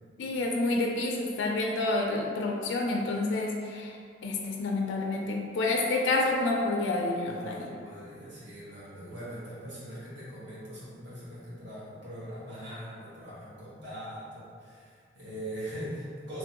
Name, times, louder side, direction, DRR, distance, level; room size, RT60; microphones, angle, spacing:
voice 1, 0.2-4.0 4.2-7.7, left 2 dB, 85° left, 1 dB, 0.4 m, -29 dB
voice 2, 7.2-16.4, equal, 75° right, -10 dB, 1.2 m, -41 dB
3.1 x 2.6 x 2.8 m, 2.2 s
head